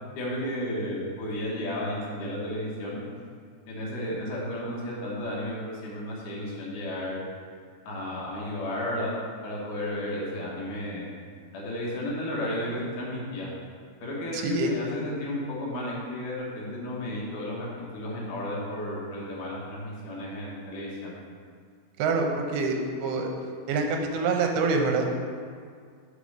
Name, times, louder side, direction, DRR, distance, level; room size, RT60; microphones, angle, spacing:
voice 1, 0.2-3.0 3.7-7.2 7.9-9.2 9.4-11.1 11.5-13.5 14.0-17.7 17.9-21.2, left 1 dB, 60° left, -5 dB, 2.4 m, -33 dB
voice 2, 14.3-14.7 22.0-23.3 23.7-25.1, right 3 dB, 85° right, 2 dB, 3.1 m, -26 dB
6.9 x 4.9 x 6.3 m, 2.1 s
omnidirectional pair, 5.0 m